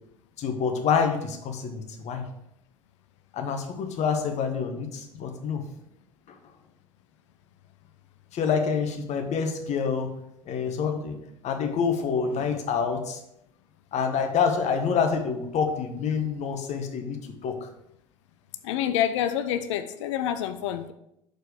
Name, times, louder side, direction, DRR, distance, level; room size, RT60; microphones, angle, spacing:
voice 1, 0.4-2.2 3.3-5.6 8.3-10.1 10.5-11.2 11.4-13.2 13.9-17.7, left 6 dB, 45° left, 6 dB, 1.1 m, -27 dB
voice 2, 18.6-20.9, left 10 dB, 70° left, 11 dB, 0.5 m, -27 dB
6.5 x 4.6 x 4.9 m, 0.80 s
figure-of-eight pair, 60°, 16 cm